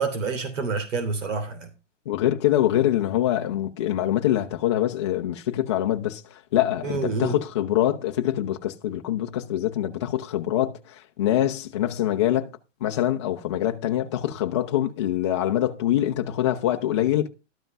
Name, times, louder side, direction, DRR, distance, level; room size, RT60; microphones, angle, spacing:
voice 1, 0.0-1.7 6.8-7.4, right 4 dB, 85° right, 3.2 m, -27 dB
voice 2, 2.1-6.2 6.5-12.5 12.8-17.3, left 12 dB, 25° left, 0.6 m, -24 dB
12.5 x 5.7 x 5.4 m
hypercardioid pair, 175°, 37 cm